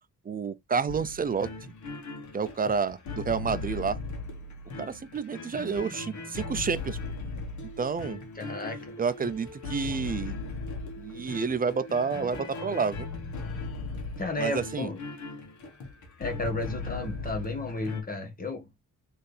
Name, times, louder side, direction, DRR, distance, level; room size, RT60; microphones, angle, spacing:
voice 1, 0.3-1.5 2.3-4.0 4.8-7.0 7.8-8.2 9.0-10.4 11.0-13.1 14.4-14.9, right 5 dB, 30° right, 0.4 m, -29 dB
sound 1, 0.9-18.0, left 3 dB, 70° left, 1.6 m, -38 dB
voice 2, 8.3-9.0 14.2-15.0 16.2-18.8, left 2 dB, 30° left, 1.5 m, -33 dB
4.2 x 3.4 x 3.3 m
cardioid pair, 120°, 30 cm